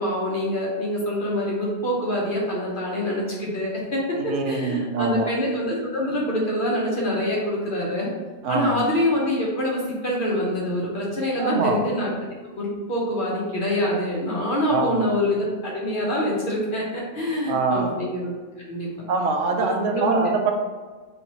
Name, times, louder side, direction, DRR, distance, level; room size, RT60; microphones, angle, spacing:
voice 1, 0.0-8.1 8.5-12.1 12.6-18.3 18.6-18.9 19.6-20.2, left 1 dB, 45° left, -4 dB, 0.8 m, -25 dB
voice 2, 4.2-5.3 8.4-8.8 11.4-11.9 14.7-15.1 17.5-17.9 19.1-20.5, right 4 dB, 70° right, 3 dB, 0.9 m, -24 dB
4.0 x 2.9 x 2.9 m, 1.4 s
omnidirectional pair, 1.5 m